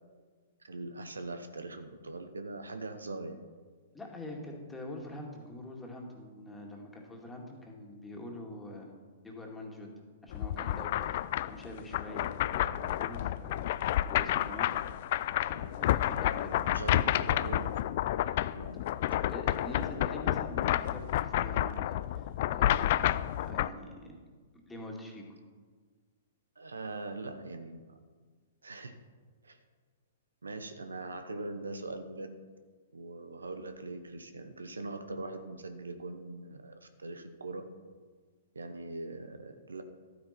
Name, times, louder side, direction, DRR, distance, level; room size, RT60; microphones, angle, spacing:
voice 1, 0.6-3.4 16.7-17.8 18.5-18.8 26.6-28.0 28.6-28.9 29.4-29.6 30.4-32.3 32.9-37.7 38.5-39.8, right 2 dB, 85° right, 9 dB, 0.9 m, -41 dB
voice 2, 3.9-8.9 9.2-9.9 10.2-13.7 14.1-14.7 15.5-16.8 19.1-24.2 24.7-25.4, left 1 dB, 10° left, -1 dB, 2.2 m, -45 dB
sound 1, 10.3-23.7, left 13 dB, 50° left, 0.3 m, -30 dB
12.5 x 9.2 x 4.4 m, 1.5 s
hypercardioid pair, 115°, 0 cm